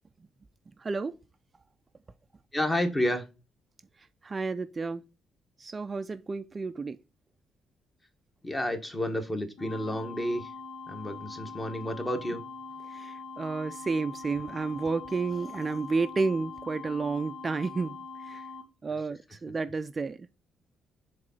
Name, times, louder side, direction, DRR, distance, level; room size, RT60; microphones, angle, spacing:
voice 1, 0.8-1.1 4.2-5.0 5.6-7.0 12.9-18.5 18.8-20.3, right 4 dB, 30° right, 0.4 m, -31 dB
voice 2, 2.5-3.2 8.4-10.5 10.9-12.4, left 1 dB, 20° left, 1.2 m, -30 dB
sound 1, 9.6-18.6, left 4 dB, 80° left, 1.5 m, -43 dB
4.8 x 3.7 x 5.6 m
cardioid pair, 90°, 0 cm